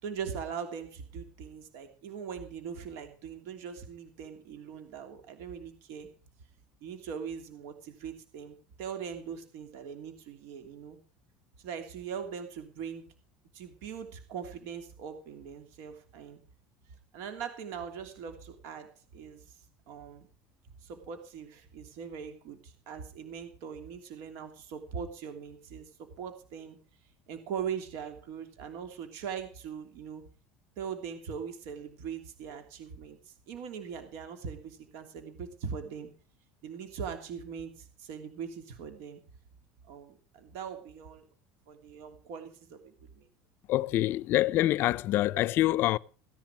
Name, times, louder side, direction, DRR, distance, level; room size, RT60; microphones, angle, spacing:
voice 1, 0.0-6.1 6.8-11.0 11.6-13.0 13.5-16.4 17.1-19.4 19.9-20.3 20.8-25.9 26.2-26.8 27.3-30.2 30.8-36.1 36.6-39.2 39.9-41.3 41.7-43.3, right 7 dB, 65° right, 3.0 m, -41 dB
voice 2, 43.7-46.0, left 15 dB, 50° left, 0.5 m, -26 dB
16.5 x 10.5 x 4.9 m
supercardioid pair, 130°, 5 cm